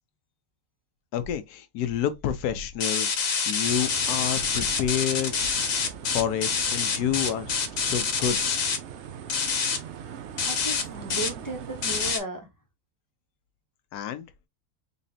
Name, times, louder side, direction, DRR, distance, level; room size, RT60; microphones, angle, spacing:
voice 1, 1.1-5.3 6.1-8.6 13.9-14.3, left 9 dB, 75° left, 1.2 m, -29 dB
sound 1, 2.8-8.8 9.3-9.8 10.4-10.8 11.1-11.3 11.8-12.2, left 5 dB, 60° left, 1.3 m, -26 dB
sound 2, 3.6-12.2, right 8 dB, 65° right, 0.7 m, -41 dB
voice 2, 10.4-12.5, right 2 dB, 15° left, 0.9 m, -35 dB
4.1 x 3.2 x 2.7 m
omnidirectional pair, 1.7 m